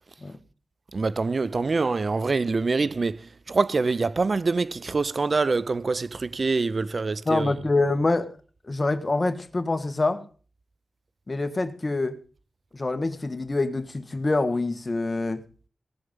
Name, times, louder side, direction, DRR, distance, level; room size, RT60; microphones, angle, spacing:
voice 1, 0.9-7.5, right 4 dB, 55° right, 0.5 m, -25 dB
voice 2, 7.3-8.3 8.7-10.2 11.3-12.2 12.7-15.4, left 2 dB, 40° left, 1.7 m, -25 dB
18.0 x 7.1 x 5.3 m
cardioid pair, 55°, 0 cm